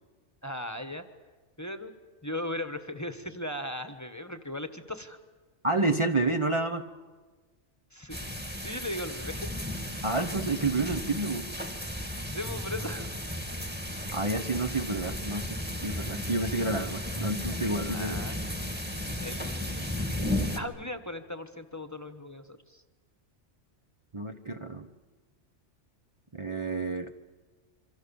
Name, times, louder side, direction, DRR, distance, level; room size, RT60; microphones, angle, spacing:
voice 1, 0.4-1.0 1.6-1.9 2.2-5.2 7.9-8.2 8.6-9.5 12.3-13.1 17.9-18.4 19.2-22.8, left 1 dB, 15° left, 9 dB, 1.3 m, -38 dB
voice 2, 5.6-6.9 10.0-11.4 14.1-18.2 24.1-24.9 26.3-27.1, right 2 dB, 30° right, 4 dB, 0.9 m, -29 dB
sound 1, 8.1-20.6, left 1 dB, 10° right, 1.9 m, -34 dB
27.0 x 25.5 x 7.1 m, 1.4 s
omnidirectional pair, 1.2 m